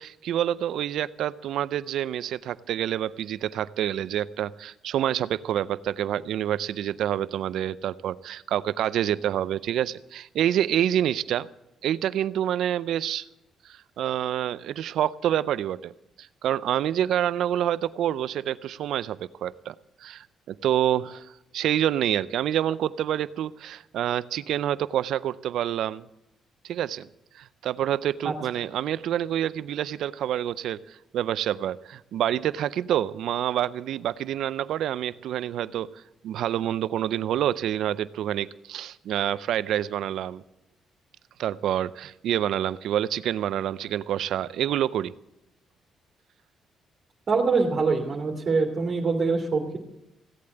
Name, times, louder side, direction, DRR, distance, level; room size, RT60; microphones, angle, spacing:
voice 1, 0.0-11.5 11.8-13.3 14.0-15.9 16.2-19.7 20.0-26.0 26.6-27.1 27.3-35.9 36.2-40.4 41.4-45.1, right 11 dB, 75° right, 17 dB, 0.5 m, -27 dB
voice 2, 47.3-49.8, right 4 dB, 45° right, 0 dB, 2.4 m, -24 dB
16.5 x 8.5 x 7.8 m, 0.87 s
cardioid pair, 90°, 0 cm